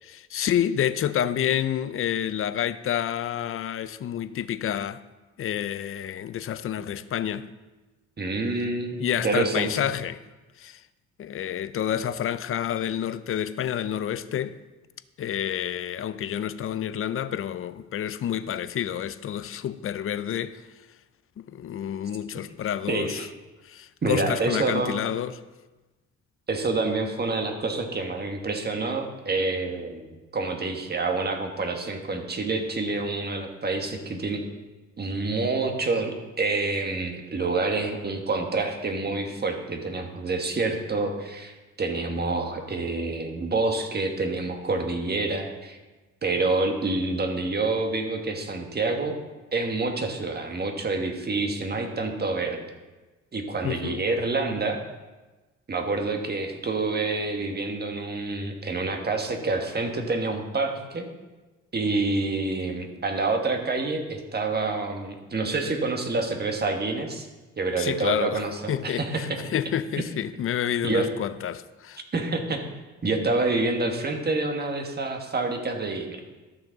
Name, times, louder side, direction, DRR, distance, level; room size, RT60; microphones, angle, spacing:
voice 1, 0.0-5.0 5.4-7.5 9.0-10.2 10.6-10.8 11.2-14.6 15.2-20.6 21.4-23.3 23.6-25.4 53.6-54.0 67.8-68.4 68.7-72.0, left 10 dB, 45° left, 0.5 m, -29 dB
voice 2, 8.2-9.7 22.9-23.3 24.0-25.0 26.5-34.4 35.0-45.8 46.2-49.2 49.5-52.7 53.3-54.8 55.7-61.1 61.7-67.3 67.6-69.2 70.8-71.1 72.1-72.6 73.0-76.2, right 3 dB, 35° right, 1.4 m, -27 dB
13.5 x 6.1 x 4.0 m
cardioid pair, 90°, 30 cm